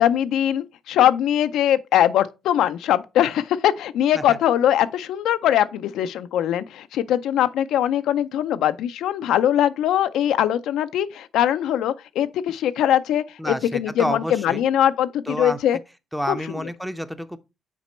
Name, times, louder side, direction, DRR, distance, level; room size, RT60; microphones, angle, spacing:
voice 1, 0.0-15.8 16.3-16.4, left 11 dB, 85° left, 0.4 m, -21 dB
voice 2, 13.4-14.6 15.3-15.6 16.1-17.4, equal, ahead, 0.6 m, -29 dB
6.0 x 4.2 x 4.3 m
cardioid pair, 90°, 0 cm